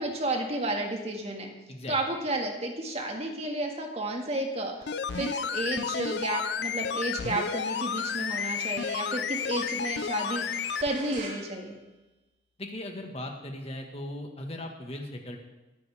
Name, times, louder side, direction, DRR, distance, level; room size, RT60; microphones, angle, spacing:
voice 1, 0.0-1.5 1.9-4.7 5.1-11.8, right 1 dB, 35° right, 2 dB, 2.0 m, -32 dB
sound 1, 4.8-10.9 11.2-11.3, left 7 dB, 70° left, 0.5 m, -32 dB
sound 2, 4.9-12.4, right 2 dB, 65° right, 3.8 m, -48 dB
voice 2, 12.6-15.4, left 1 dB, 35° left, 2 dB, 1.8 m, -38 dB
22.0 x 9.7 x 3.6 m, 1.1 s
head